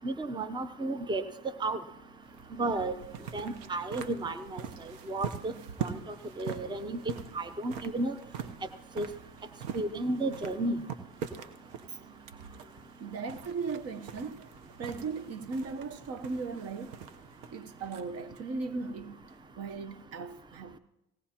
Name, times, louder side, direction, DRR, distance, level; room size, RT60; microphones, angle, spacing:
voice 1, 0.0-1.2 1.6-1.8 2.6-2.9 3.3-4.6 5.1-5.5 5.8-6.0 6.4-8.1 9.0-9.1 9.7-10.8, right 2 dB, 15° right, 0.7 m, -32 dB
sound 1, 2.0-19.6, right 7 dB, 90° right, 1.0 m, -44 dB
voice 2, 13.0-14.5 14.8-17.1 17.5-20.8, right 4 dB, 55° right, 1.0 m, -38 dB
18.5 x 17.5 x 2.9 m
cardioid pair, 110°, 30 cm